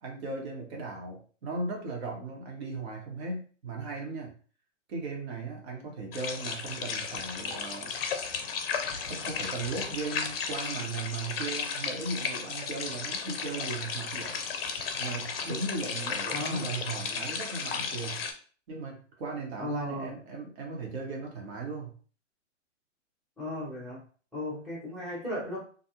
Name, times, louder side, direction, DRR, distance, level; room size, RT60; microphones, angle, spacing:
voice 1, 0.0-4.3 4.9-7.9 9.0-14.4 15.0-18.2 18.7-21.9, right 3 dB, 55° right, 0 dB, 1.0 m, -37 dB
sound 1, 6.1-18.3, left 6 dB, 50° left, 0.5 m, -34 dB
voice 2, 16.3-16.7 19.6-20.1 23.4-24.0 24.3-25.6, left 1 dB, ahead, -9 dB, 0.5 m, -35 dB
2.5 x 2.3 x 2.8 m, 0.41 s
hypercardioid pair, 135°, 38 cm